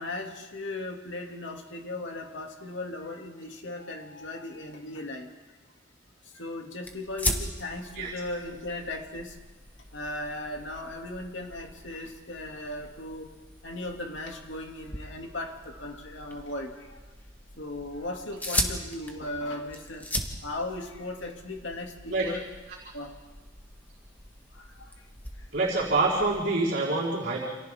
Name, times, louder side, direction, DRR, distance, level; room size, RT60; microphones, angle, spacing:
voice 1, 0.0-5.3 6.3-9.4 9.9-13.3 13.6-17.0 17.6-22.5 22.9-23.2 24.5-24.9 25.4-25.5, left 2 dB, 70° left, 2 dB, 2.6 m, -37 dB
sound 1, 6.8-26.5, left 1 dB, 10° left, 1.7 m, -39 dB
voice 2, 25.5-27.4, right 3 dB, 55° right, -8 dB, 4.6 m, -26 dB
29.5 x 27.0 x 3.7 m, 1.2 s
head